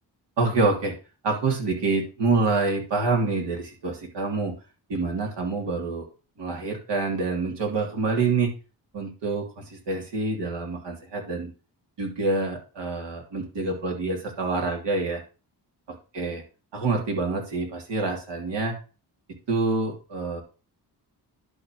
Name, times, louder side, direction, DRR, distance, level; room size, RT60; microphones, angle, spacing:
voice 1, 0.4-0.9 1.2-4.5 4.9-6.1 6.4-8.5 8.9-11.5 12.0-15.2 16.1-16.4 16.7-18.7 19.3-20.4, right 3 dB, 90° right, 1 dB, 3.1 m, -26 dB
11.0 x 4.2 x 6.3 m, 0.34 s
cardioid pair, 80°, 41 cm